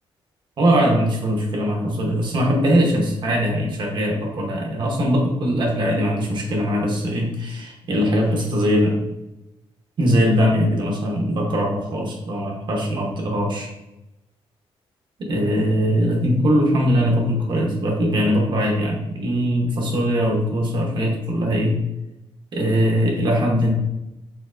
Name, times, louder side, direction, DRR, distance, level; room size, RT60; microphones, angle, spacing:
voice 1, 0.6-9.0 10.0-13.7 15.2-21.8 22.5-23.7, equal, 50° right, 0 dB, 0.9 m, -21 dB
4.5 x 2.7 x 2.5 m, 0.94 s
cardioid pair, 125°, 10 cm